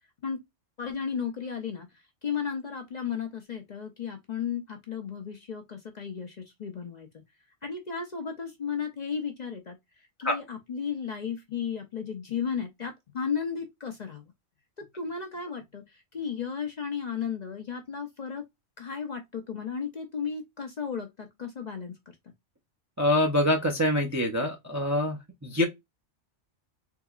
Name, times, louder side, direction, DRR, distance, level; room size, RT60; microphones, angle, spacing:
voice 1, 0.8-7.2 7.6-9.8 10.2-14.3 14.8-18.4 18.8-22.1, left 6 dB, 45° left, 0.6 m, -34 dB
voice 2, 23.0-25.6, left 1 dB, 25° right, 0.4 m, -25 dB
3.8 x 2.8 x 2.3 m
omnidirectional pair, 1.2 m